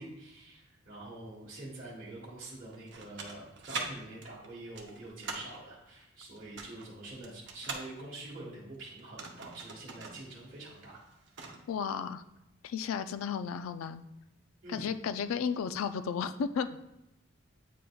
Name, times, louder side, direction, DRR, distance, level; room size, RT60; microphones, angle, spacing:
voice 1, 0.0-11.0 14.6-14.9, right 2 dB, 40° right, -7 dB, 1.3 m, -46 dB
sound 1, 2.7-3.9 4.2-5.6 6.4-7.9 9.0-10.2 10.5-10.6 11.0-11.6, right 4 dB, 55° right, 0.7 m, -41 dB
voice 2, 11.7-12.2 12.6-14.1 14.7-16.8, left 6 dB, 85° left, 11 dB, 0.3 m, -33 dB
8.4 x 5.0 x 2.3 m, 0.88 s
head